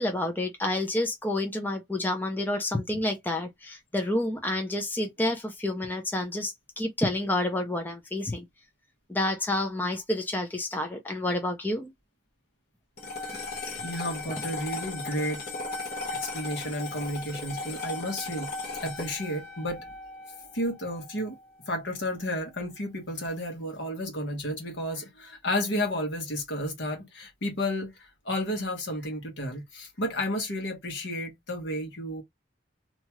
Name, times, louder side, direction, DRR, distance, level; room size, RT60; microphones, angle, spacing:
voice 1, 0.0-8.4 9.1-11.9, left 1 dB, 10° left, 0.5 m, -29 dB
sound 1, 13.0-21.5, left 3 dB, 50° left, 1.0 m, -37 dB
voice 2, 13.8-15.4 16.1-18.5 18.8-19.8 20.5-21.3 21.7-32.2, left 1 dB, 75° left, 1.3 m, -32 dB
2.9 x 2.3 x 2.9 m
head